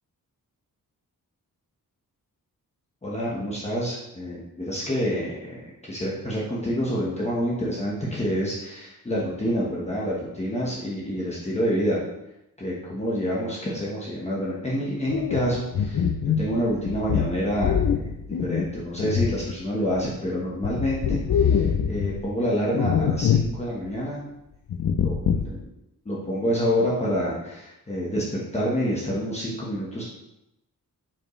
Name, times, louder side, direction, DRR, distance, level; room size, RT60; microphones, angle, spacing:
voice 1, 3.0-12.0 12.6-16.1 16.4-18.0 18.3-24.2 24.9-25.7 26.0-30.0, equal, 20° left, -6 dB, 1.2 m, -27 dB
sound 1, 15.1-20.1 20.4-22.3 22.7-23.6 23.9-24.0 24.7-25.6, left 7 dB, 60° left, 0.5 m, -24 dB
7.2 x 5.3 x 3.2 m, 0.87 s
wide cardioid pair, 175°, 34 cm